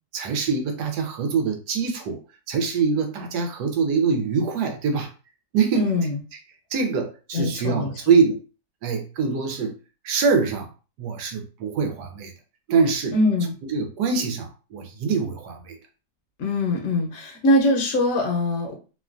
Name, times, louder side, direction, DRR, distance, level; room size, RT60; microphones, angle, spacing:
voice 1, 0.1-2.2 2.5-5.1 5.5-5.9 6.7-8.4 8.8-9.7 10.0-10.7 11.0-12.3 12.7-13.1 13.7-15.8, right 5 dB, 90° right, 5 dB, 1.2 m, -24 dB
voice 2, 5.7-6.2 7.3-7.9 13.1-13.5 16.4-18.7, left 1 dB, 65° left, 0 dB, 0.9 m, -22 dB
3.0 x 2.2 x 2.4 m, 0.33 s
omnidirectional pair, 1.8 m